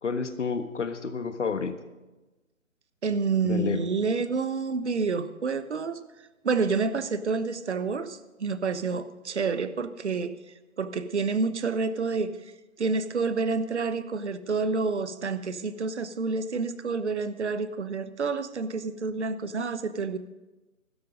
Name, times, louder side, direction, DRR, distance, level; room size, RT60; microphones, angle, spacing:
voice 1, 0.0-1.7 3.4-3.9, left 5 dB, 60° left, 10 dB, 1.4 m, -30 dB
voice 2, 3.0-6.0 6.4-10.4 10.8-12.3 12.8-20.2, right 4 dB, 55° right, 12 dB, 1.1 m, -28 dB
15.5 x 12.5 x 5.2 m, 1.1 s
figure-of-eight pair, 145°, 42 cm